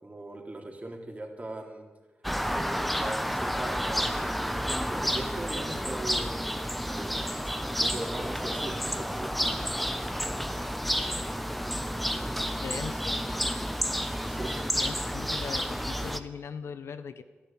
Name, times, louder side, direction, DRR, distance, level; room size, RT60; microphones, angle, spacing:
voice 1, 0.0-1.9 2.4-6.3 6.8-7.3 7.7-9.3 14.3-14.8, right 2 dB, 35° right, 1 dB, 3.8 m, -40 dB
sound 1, 2.2-16.2, equal, ahead, 1.2 m, -30 dB
voice 2, 12.6-13.2 14.8-17.2, left 6 dB, 85° left, 11 dB, 1.1 m, -39 dB
13.5 x 11.5 x 9.1 m, 1.3 s
cardioid pair, 50°, 4 cm